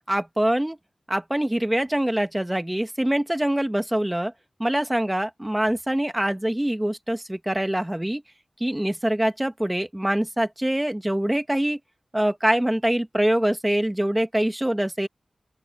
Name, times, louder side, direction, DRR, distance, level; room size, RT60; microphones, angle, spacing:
voice 1, 0.1-0.8 1.1-4.3 4.6-8.2 8.6-11.8 12.1-15.1, right 1 dB, 15° right, 2.2 m, -24 dB
open air
cardioid pair, 45°, 0 cm